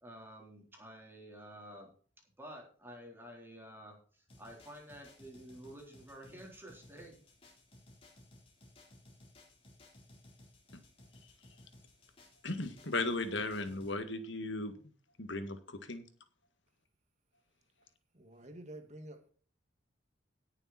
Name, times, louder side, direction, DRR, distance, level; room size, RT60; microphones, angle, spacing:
voice 1, 0.0-1.9 2.4-7.2, equal, 10° right, 3.9 m, -51 dB
sound 1, 4.3-13.9, left 1 dB, 30° left, 3.8 m, -59 dB
voice 2, 12.4-14.7 15.2-16.0, left 2 dB, 75° left, 1.9 m, -36 dB
voice 3, 18.1-19.3, right 1 dB, 35° right, 2.0 m, -49 dB
17.0 x 7.0 x 4.3 m
head